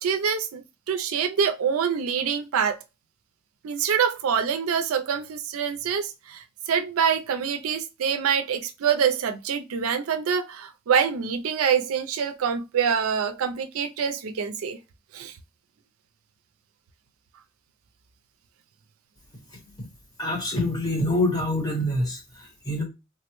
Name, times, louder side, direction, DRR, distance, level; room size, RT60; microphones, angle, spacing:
voice 1, 0.0-2.8 3.6-14.8 15.1-15.3, right 7 dB, 85° right, 0.4 m, -25 dB
voice 2, 20.2-22.8, left 1 dB, 20° left, 0.9 m, -26 dB
3.4 x 2.1 x 2.9 m
head